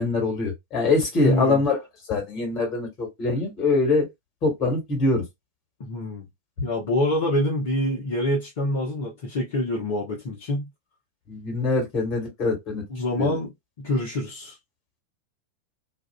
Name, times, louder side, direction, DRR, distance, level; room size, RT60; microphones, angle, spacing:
voice 1, 0.0-1.8 2.1-4.1 4.4-5.2 11.3-12.8 13.2-13.4, left 3 dB, 35° left, 1.6 m, -23 dB
voice 2, 1.2-1.6 5.8-6.3 6.6-10.7 12.9-13.5 13.8-14.5, left 1 dB, 55° left, 1.0 m, -26 dB
2.6 x 2.4 x 2.3 m
figure-of-eight pair, 90°, 0 cm